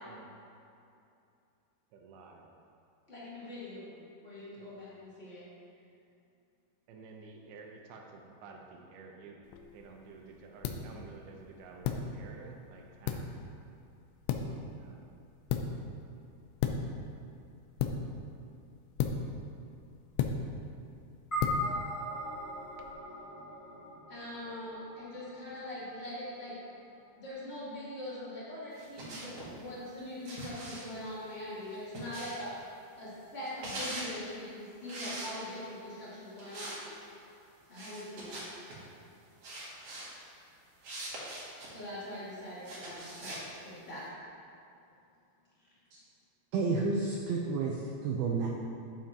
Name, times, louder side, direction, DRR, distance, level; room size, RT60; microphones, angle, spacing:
voice 1, 1.9-2.5 4.6-4.8 6.9-9.4 9.7-13.3 14.4-15.2, right 4 dB, 75° right, 1 dB, 2.5 m, -51 dB
voice 2, 3.1-3.9 4.2-5.4 24.1-26.6 27.2-32.5 33.0-36.8 37.7-38.4 41.7-44.0, left 1 dB, 50° left, -9 dB, 0.7 m, -42 dB
sound 1, 9.4-22.9, left 6 dB, 85° left, 2.8 m, -37 dB
sound 2, 21.3-25.9, left 1 dB, 25° left, 1.0 m, -38 dB
sound 3, 28.8-29.5 30.2-32.6 33.4-34.1 34.9-35.7 36.4-36.8 37.1-37.2 37.7-38.8 39.4-40.1 40.8-41.7 42.6-43.4, right 1 dB, 55° right, 1.8 m, -42 dB
voice 3, 46.5-48.5, right 4 dB, 90° right, -1 dB, 2.1 m, -31 dB
11.0 x 8.7 x 2.9 m, 2.6 s
omnidirectional pair, 5.2 m